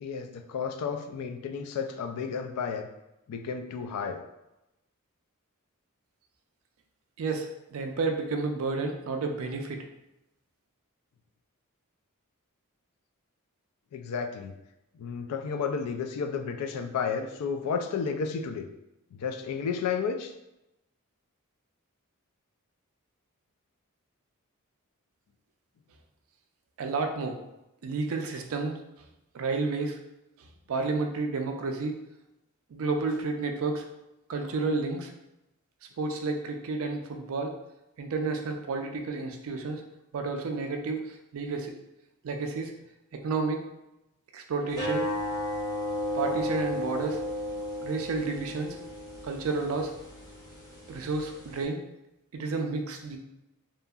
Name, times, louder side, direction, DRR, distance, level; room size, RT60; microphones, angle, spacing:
voice 1, 0.0-2.9 3.3-4.2 13.9-14.5 15.0-18.7 19.1-20.3, left 6 dB, 90° left, 6 dB, 0.3 m, -32 dB
voice 2, 7.2-9.8 26.8-27.4 27.8-28.8 29.3-30.0 30.7-32.0 32.7-33.8 34.3-35.1 36.0-37.6 38.0-39.8 40.1-41.7 42.2-42.7 43.2-43.6 44.3-45.1 46.1-47.2 47.8-48.8 49.2-49.9 50.9-51.8 52.3-53.2, right 3 dB, 65° right, 4 dB, 0.4 m, -31 dB
sound 1, 44.7-51.6, left 1 dB, 15° left, 0.7 m, -34 dB
2.7 x 2.5 x 2.3 m, 0.91 s
head